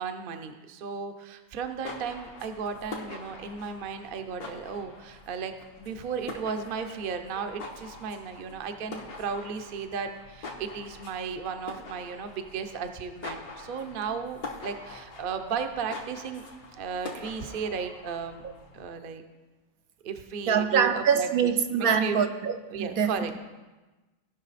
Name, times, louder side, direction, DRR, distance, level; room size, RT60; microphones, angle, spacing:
voice 1, 0.0-16.5 16.7-18.4 18.7-19.2 20.0-21.3 21.8-22.2 22.7-23.4, right 6 dB, 45° right, 0.7 m, -35 dB
sound 1, 1.6-18.9, left 3 dB, 75° left, 1.7 m, -44 dB
voice 2, 20.5-23.1, right 7 dB, 75° right, 1.2 m, -24 dB
17.5 x 5.9 x 4.1 m
omnidirectional pair, 1.6 m